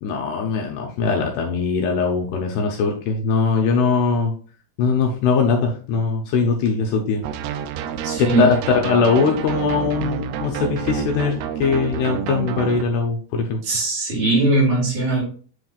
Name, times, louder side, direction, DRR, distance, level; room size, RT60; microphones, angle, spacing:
voice 1, 0.0-4.3 4.8-7.2 8.2-13.6, left 5 dB, 75° left, 1 dB, 2.6 m, -21 dB
sound 1, 7.2-12.8, right 9 dB, 85° right, 2.3 m, -28 dB
voice 2, 8.0-8.5 13.6-15.2, right 2 dB, 55° right, -4 dB, 3.9 m, -19 dB
9.5 x 4.1 x 2.4 m, 0.41 s
omnidirectional pair, 5.2 m